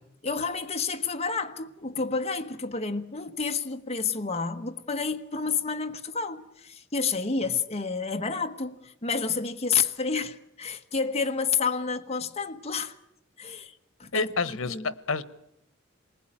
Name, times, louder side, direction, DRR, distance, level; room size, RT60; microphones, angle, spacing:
voice 1, 0.2-12.9 13.4-13.7 14.0-14.9, left 5 dB, 30° left, 1.3 m, -30 dB
voice 2, 14.1-15.2, left 4 dB, 90° left, 1.1 m, -29 dB
27.5 x 20.5 x 9.0 m
head